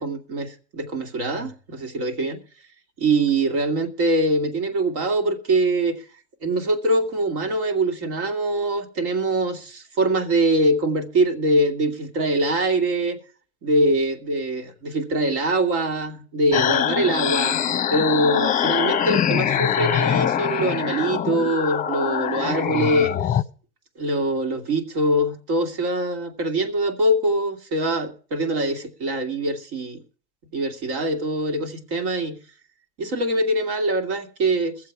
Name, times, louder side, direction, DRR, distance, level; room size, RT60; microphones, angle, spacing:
voice 1, 0.0-2.4 3.0-6.0 6.4-13.2 13.6-17.6 17.9-23.2 24.0-30.0 30.5-32.4 33.0-34.8, right 1 dB, 65° right, 2.5 m, -23 dB
sound 1, 16.5-23.4, left 9 dB, 25° left, 0.8 m, -23 dB
22.0 x 7.5 x 4.7 m
hypercardioid pair, 95°, 34 cm